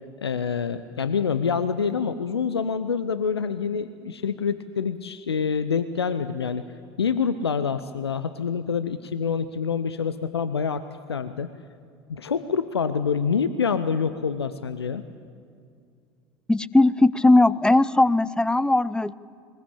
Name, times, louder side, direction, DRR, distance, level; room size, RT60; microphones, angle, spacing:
voice 1, 0.2-6.6 7.0-11.5 12.1-15.0, left 6 dB, 80° left, 12 dB, 0.6 m, -26 dB
voice 2, 16.5-19.1, left 2 dB, 5° left, 19 dB, 0.5 m, -19 dB
21.5 x 20.5 x 8.4 m, 2.3 s
figure-of-eight pair, 65°, 13 cm